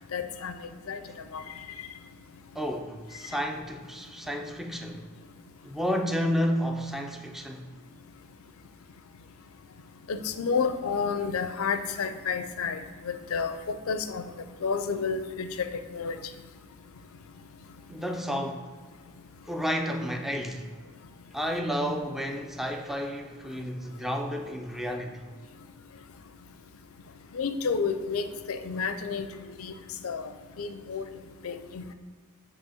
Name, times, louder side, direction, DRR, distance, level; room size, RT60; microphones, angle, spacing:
voice 1, 0.1-0.5 0.9-1.0 1.3-1.4 10.1-12.8 13.0-14.2 14.6-16.2 27.3-29.7 30.0-30.3 30.6-31.0 31.4-31.9, left 5 dB, 70° left, 0.5 m, -30 dB
voice 2, 2.6-5.1 5.6-7.7 17.9-18.7 19.5-20.7 21.3-25.2, equal, ahead, 0.4 m, -31 dB
8.2 x 2.9 x 6.3 m
head